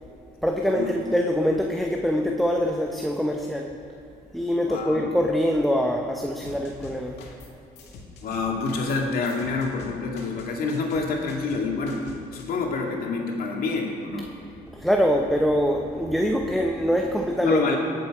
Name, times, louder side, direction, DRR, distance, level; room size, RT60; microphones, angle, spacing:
voice 1, 0.4-3.7 4.3-7.1 14.7-17.8, equal, ahead, 1 dB, 0.9 m, -24 dB
voice 2, 4.6-5.1 8.2-14.3 17.4-17.8, left 4 dB, 60° left, 0 dB, 2.3 m, -27 dB
sound 1, 6.4-7.5 7.8-12.4, left 4 dB, 85° left, 1.9 m, -44 dB
18.0 x 7.8 x 4.9 m, 2.6 s
cardioid pair, 110°, 17 cm